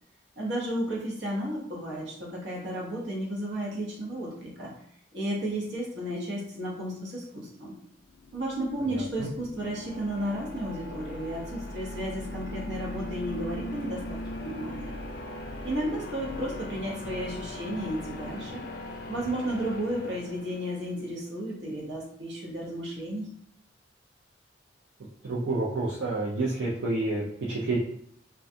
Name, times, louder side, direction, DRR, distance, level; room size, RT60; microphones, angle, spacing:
voice 1, 0.4-4.7 5.1-7.7 8.3-15.0 15.6-18.6 19.1-23.3, right 1 dB, 70° right, -3 dB, 0.9 m, -33 dB
sound 1, 8.0-21.0, left 1 dB, 55° left, 0.4 m, -39 dB
voice 2, 8.9-9.3 25.2-27.8, right 2 dB, 85° right, -5 dB, 0.5 m, -29 dB
2.4 x 2.2 x 2.6 m, 0.70 s
head